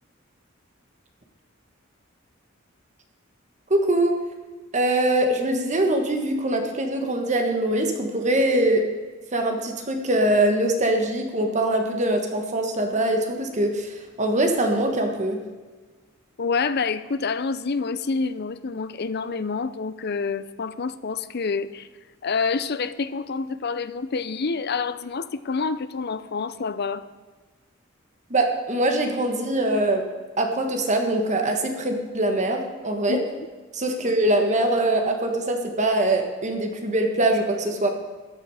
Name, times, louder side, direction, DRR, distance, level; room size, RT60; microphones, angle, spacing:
voice 1, 3.7-4.1 4.7-8.8 9.3-15.4 28.3-30.0 30.4-33.2 33.7-37.9, right 1 dB, 35° right, 4 dB, 1.5 m, -23 dB
voice 2, 16.4-21.9 22.2-27.0 33.1-33.2, left 4 dB, 55° left, 14 dB, 0.6 m, -27 dB
14.0 x 10.5 x 4.9 m, 1.4 s
head